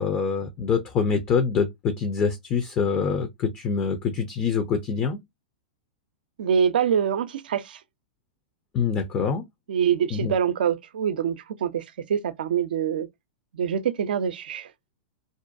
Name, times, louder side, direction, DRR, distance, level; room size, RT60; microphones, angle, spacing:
voice 1, 0.0-5.2 8.7-9.4 10.1-10.3, left 6 dB, 30° left, 0.5 m, -25 dB
voice 2, 6.4-7.8 9.7-13.1 13.5-14.7, right 8 dB, 75° right, 0.4 m, -25 dB
2.5 x 2.2 x 2.5 m
hypercardioid pair, 115°, 5 cm